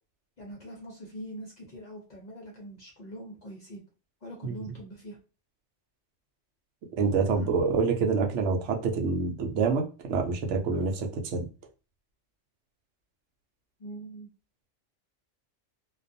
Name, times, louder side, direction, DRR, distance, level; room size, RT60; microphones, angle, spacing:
voice 1, 0.4-3.8 4.2-5.2 13.8-14.3, right 1 dB, 45° left, -1 dB, 0.6 m, -43 dB
voice 2, 4.4-4.7 7.0-11.4, right 4 dB, 75° right, 2 dB, 0.9 m, -27 dB
2.4 x 2.2 x 2.5 m, 0.33 s
omnidirectional pair, 1.3 m